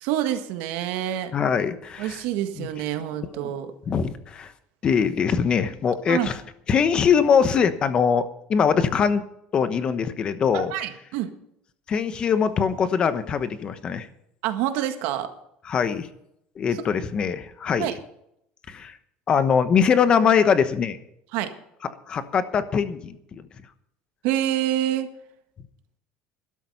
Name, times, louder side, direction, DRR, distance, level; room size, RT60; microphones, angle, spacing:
voice 1, 0.0-1.3 2.0-3.7 6.1-6.3 10.5-11.3 14.4-15.3 16.7-17.1 17.8-17.9 21.3-21.5 24.2-25.1, right 12 dB, 70° right, 8 dB, 1.7 m, -27 dB
voice 2, 1.3-2.2 2.6-2.7 3.3-3.5 3.9-4.5 4.8-6.4 6.7-9.2 9.5-10.7 11.9-14.1 15.7-16.1 16.6-17.9 18.7-19.0 19.3-21.0 22.1-23.4, left 6 dB, 30° left, 12 dB, 1.1 m, -22 dB
12.5 x 12.5 x 5.5 m, 0.75 s
cardioid pair, 160°, 3 cm